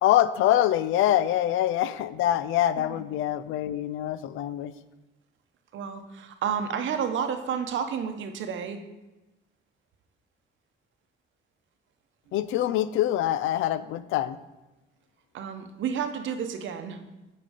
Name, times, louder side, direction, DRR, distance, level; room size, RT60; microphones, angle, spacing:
voice 1, 0.0-4.7 12.3-14.4, left 12 dB, 85° left, 15 dB, 0.4 m, -25 dB
voice 2, 5.7-8.8 15.3-17.0, right 7 dB, 75° right, 6 dB, 0.9 m, -31 dB
8.8 x 4.2 x 4.9 m, 1.0 s
cardioid pair, 90°, 20 cm